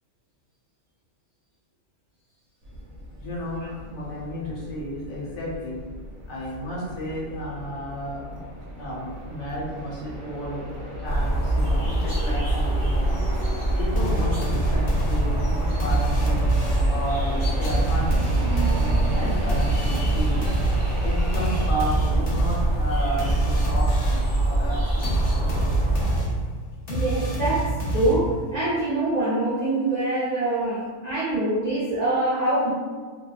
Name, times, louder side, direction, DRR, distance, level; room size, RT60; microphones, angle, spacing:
sound 1, 2.6-21.7, right 1 dB, 70° right, 0.9 m, -36 dB
voice 1, 3.2-3.6 3.9-5.8 6.3-8.4 8.8-10.7 11.0-13.5 13.8-16.4 16.9-20.5 21.0-26.0, equal, 85° left, -6 dB, 1.2 m, -32 dB
sound 2, 11.0-26.2, right 1 dB, 30° left, 0.7 m, -24 dB
sound 3, 14.0-17.0 17.6-24.4 25.0-28.5, right 2 dB, 70° left, 0.4 m, -27 dB
voice 2, 26.9-32.7, right 1 dB, 50° right, -11 dB, 0.5 m, -24 dB
2.6 x 2.2 x 2.3 m, 1.5 s
omnidirectional pair, 1.3 m